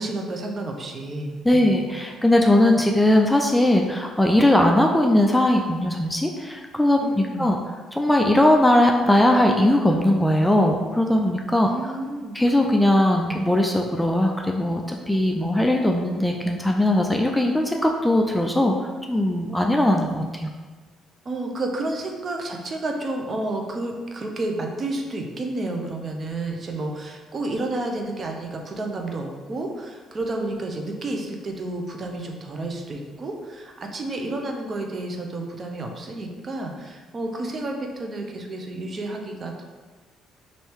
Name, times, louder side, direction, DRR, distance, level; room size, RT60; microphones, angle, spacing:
voice 1, 0.0-1.8 7.0-7.5 11.7-12.4 21.2-39.6, right 2 dB, 40° right, 2 dB, 0.6 m, -31 dB
voice 2, 1.4-7.6 7.9-11.7 12.3-18.8 19.1-20.5, left 1 dB, 5° left, 1 dB, 0.3 m, -19 dB
3.3 x 2.7 x 4.5 m, 1.4 s
cardioid pair, 90°, 0 cm